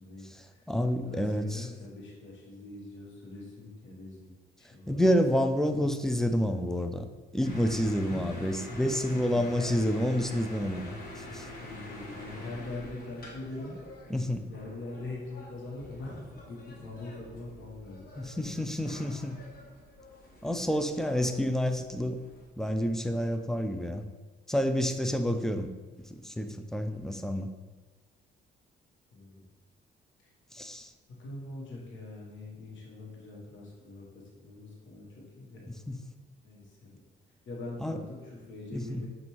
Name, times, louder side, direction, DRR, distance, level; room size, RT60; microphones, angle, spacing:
voice 1, 0.0-0.7 1.0-4.3 4.6-5.0 5.7-5.8 8.1-8.3 9.0-9.5 11.6-13.7 14.3-18.0 18.3-18.5 18.8-19.2 29.1-29.4 30.2-30.3 31.2-36.0 36.4-37.0 37.5-39.1, left 2 dB, 70° left, -3 dB, 1.2 m, -43 dB
voice 2, 0.7-1.7 4.9-7.1 7.3-11.0 11.3-11.5 14.1-14.4 18.2-19.4 20.4-22.2 22.6-24.0 24.5-25.7 26.1-27.5 30.5-30.9 35.9-36.0 37.8-38.0 38.7-39.0, equal, ahead, 7 dB, 0.3 m, -29 dB
sound 1, 7.4-22.5, left 1 dB, 50° left, 1.2 m, -46 dB
6.8 x 2.6 x 3.0 m, 1.3 s
cardioid pair, 90°, 20 cm